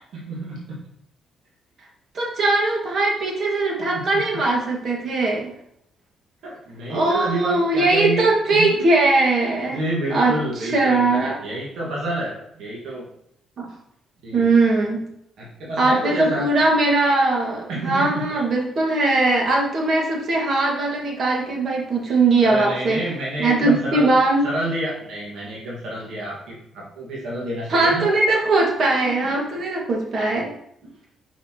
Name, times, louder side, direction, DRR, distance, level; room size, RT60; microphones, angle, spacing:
voice 1, 0.1-0.8 3.9-4.1 6.4-8.3 8.6-8.9 9.7-13.1 14.2-14.5 15.4-16.5 17.7-18.4 22.4-24.1 24.4-28.1 29.2-29.4 30.8-30.9, right 1 dB, 75° right, -5 dB, 1.7 m, -29 dB
voice 2, 2.1-5.5 6.9-9.8 10.1-10.3 10.6-11.4 13.6-13.7 14.3-15.0 15.8-23.0 23.4-24.4 27.7-30.5, right 2 dB, 55° right, -1 dB, 1.9 m, -20 dB
5.9 x 5.6 x 2.9 m, 0.74 s
cardioid pair, 90°, 0 cm